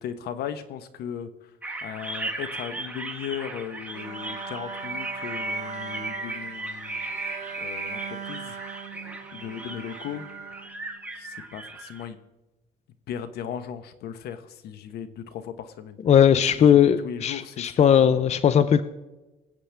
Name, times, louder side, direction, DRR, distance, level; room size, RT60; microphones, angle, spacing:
voice 1, 0.0-1.3 1.8-7.0 7.6-8.6 9.3-10.2 11.2-12.2 13.1-16.0 16.6-18.2, left 8 dB, 70° left, 11 dB, 1.1 m, -37 dB
sound 1, 1.6-12.1, right 2 dB, 10° right, 1.6 m, -36 dB
Bowed string instrument, 3.9-11.3, right 5 dB, 40° right, 2.6 m, -40 dB
voice 2, 16.0-18.8, left 8 dB, 40° left, 12 dB, 0.6 m, -18 dB
24.0 x 8.1 x 3.4 m, 1.1 s
cardioid pair, 110°, 17 cm